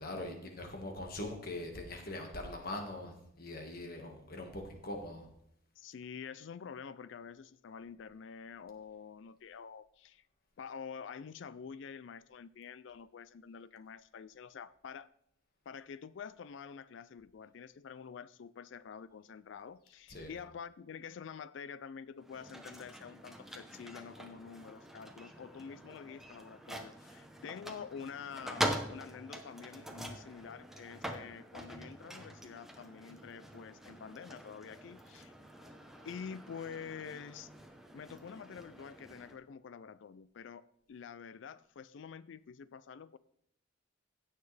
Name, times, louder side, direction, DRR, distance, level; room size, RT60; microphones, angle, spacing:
voice 1, 0.0-5.3 20.1-20.4 27.0-27.1, left 1 dB, 50° left, 3 dB, 1.7 m, -42 dB
voice 2, 5.8-10.2 10.6-15.1 15.7-35.3 36.0-37.5 37.9-43.2, left 6 dB, 65° left, 17 dB, 0.4 m, -47 dB
sound 1, 22.2-39.4, right 1 dB, ahead, 0.8 m, -44 dB
16.5 x 6.6 x 3.3 m, 0.72 s
head